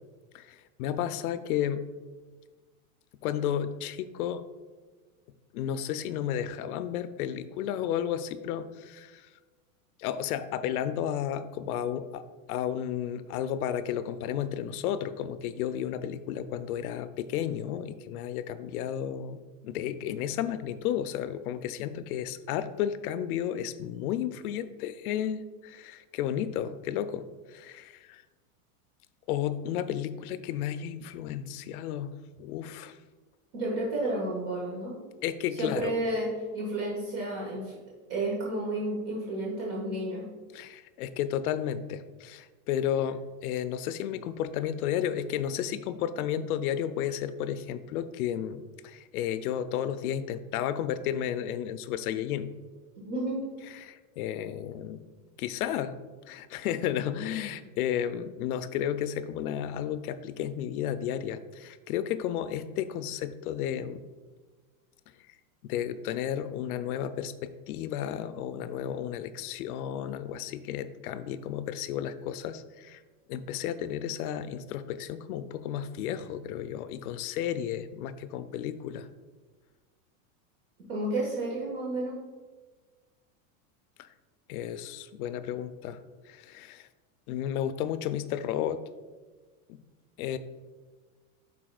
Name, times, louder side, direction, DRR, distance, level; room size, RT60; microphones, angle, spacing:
voice 1, 0.3-1.9 3.2-4.4 5.5-9.3 10.0-12.2 12.5-28.2 29.3-33.0 35.2-35.9 40.5-52.5 53.7-55.0 55.4-55.9 56.3-64.0 65.6-73.0 73.3-79.1 84.0-84.1 84.5-86.0 86.3-86.9 87.3-88.8 89.7-89.8 90.2-90.4, left 10 dB, 80° left, 12 dB, 0.5 m, -33 dB
voice 2, 33.5-35.0 35.6-36.3 36.5-37.7 38.1-40.3 53.0-53.4 80.9-82.2, right 1 dB, 50° right, -4 dB, 1.5 m, -31 dB
11.0 x 4.1 x 2.3 m, 1.4 s
supercardioid pair, 160°, 43 cm